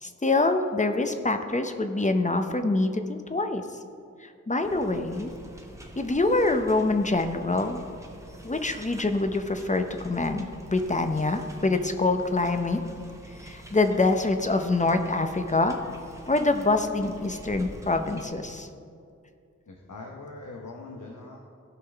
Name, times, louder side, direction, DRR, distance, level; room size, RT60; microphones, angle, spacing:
voice 1, 0.0-3.8 4.2-5.3 6.0-7.8 8.4-12.8 13.3-15.8 16.3-18.7, left 2 dB, 25° left, 7 dB, 0.7 m, -25 dB
sound 1, 4.6-18.3, right 1 dB, 10° right, 1.0 m, -46 dB
voice 2, 19.7-21.4, left 3 dB, 85° left, 0 dB, 0.9 m, -42 dB
16.0 x 5.6 x 3.5 m, 2.4 s
wide cardioid pair, 65°, 30 cm